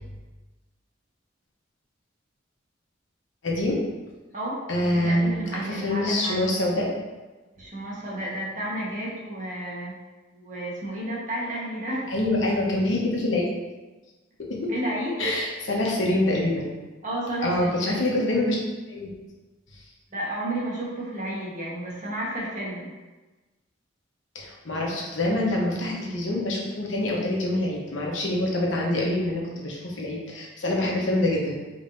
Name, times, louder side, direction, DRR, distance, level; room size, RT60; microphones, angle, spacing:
voice 1, 3.4-3.8 4.7-6.9 12.1-13.5 14.4-14.7 15.2-16.7 17.4-18.6 18.9-19.1 24.3-31.6, left 1 dB, 85° left, -2 dB, 1.0 m, -25 dB
voice 2, 4.3-4.6 4.9-6.4 7.6-10.0 10.3-12.1 14.7-15.3 17.0-17.8 20.1-22.9, right 1 dB, 45° right, -5 dB, 1.3 m, -32 dB
5.2 x 3.2 x 2.6 m, 1.2 s
head